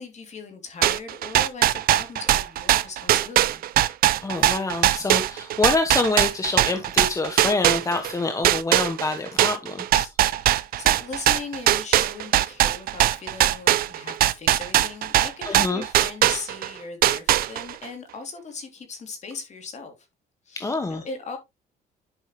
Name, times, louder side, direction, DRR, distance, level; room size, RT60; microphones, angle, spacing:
voice 1, 0.0-3.6 10.3-20.1 20.4-21.4, left 4 dB, 45° left, 2.9 m, -38 dB
sound 1, 0.8-8.1 8.4-16.7 17.0-17.8, right 13 dB, 60° right, 0.6 m, -20 dB
voice 2, 4.2-10.1 15.4-15.9 20.6-21.0, left 3 dB, 20° left, 1.0 m, -26 dB
11.0 x 5.4 x 3.0 m
cardioid pair, 110°, 17 cm